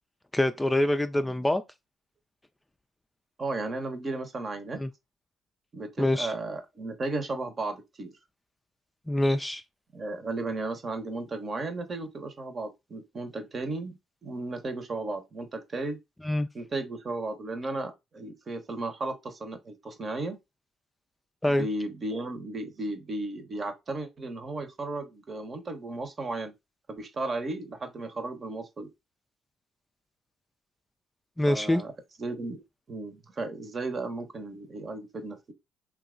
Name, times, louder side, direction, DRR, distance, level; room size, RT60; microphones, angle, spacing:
voice 1, 0.3-1.6 4.8-4.9 6.0-6.3 9.1-9.6 16.2-16.5 21.4-21.7 31.4-31.8, left 1 dB, 10° left, 0.3 m, -25 dB
voice 2, 3.4-4.8 5.7-8.1 9.9-16.0 16.5-20.4 21.5-26.5 26.9-28.9 31.5-31.9 32.2-32.6 32.9-35.5, right 2 dB, 45° right, 0.9 m, -35 dB
2.9 x 2.4 x 3.7 m
supercardioid pair, 60°, 0 cm